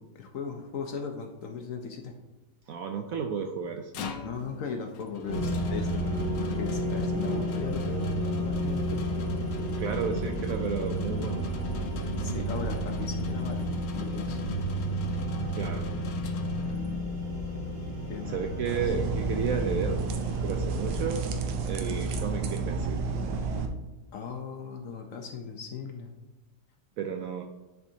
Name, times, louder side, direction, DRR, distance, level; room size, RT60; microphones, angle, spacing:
voice 1, 0.0-2.1 4.1-9.2 12.2-14.4 16.6-17.1 18.1-18.8 24.1-26.1, left 5 dB, 60° left, 3 dB, 0.9 m, -38 dB
voice 2, 2.7-4.0 9.8-11.4 15.5-15.9 18.3-20.0 20.4-21.2 21.6-23.1 27.0-27.4, right 6 dB, 70° right, 4 dB, 0.8 m, -32 dB
sound 1, 3.6-17.1, left 4 dB, 90° left, 1.4 m, -42 dB
sound 2, 5.3-21.0, equal, 50° right, 2.1 m, -31 dB
sound 3, 18.7-23.7, right 4 dB, 90° right, 1.4 m, -31 dB
10.0 x 4.5 x 2.8 m, 1.1 s
omnidirectional pair, 1.8 m